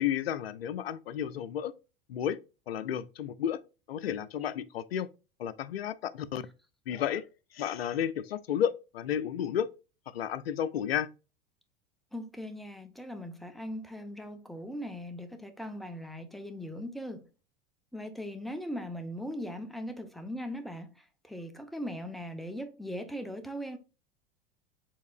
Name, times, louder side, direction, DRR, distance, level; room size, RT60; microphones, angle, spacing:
voice 1, 0.0-1.7 2.1-2.4 2.7-3.6 3.9-5.1 5.4-6.4 6.9-7.2 7.5-9.7 10.1-11.1, left 9 dB, 85° left, 0.5 m, -32 dB
voice 2, 12.1-17.3 17.9-23.8, equal, ahead, 0.8 m, -39 dB
4.7 x 3.5 x 2.4 m
hypercardioid pair, 90°, 29 cm